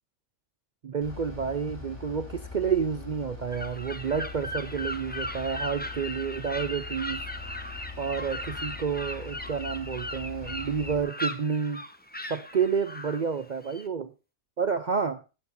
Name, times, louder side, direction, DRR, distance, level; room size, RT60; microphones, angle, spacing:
voice 1, 0.8-7.2 8.0-11.8 12.3-14.1 14.6-15.2, right 6 dB, 60° right, 12 dB, 0.4 m, -29 dB
Bus / Idling, 1.0-11.0, left 4 dB, 70° left, 7.0 m, -42 dB
sound 1, 3.5-13.9, left 1 dB, 10° left, 0.8 m, -38 dB
15.5 x 9.4 x 2.6 m, 0.30 s
omnidirectional pair, 1.5 m